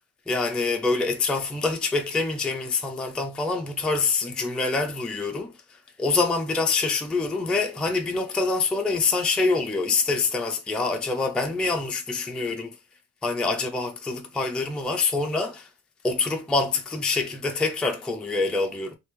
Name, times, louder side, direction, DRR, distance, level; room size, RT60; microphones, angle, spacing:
voice 1, 0.3-5.5 6.0-12.7 13.2-15.7 16.0-19.0, left 3 dB, 5° left, 0.4 m, -25 dB
3.2 x 2.7 x 3.0 m
cardioid pair, 90°, 30 cm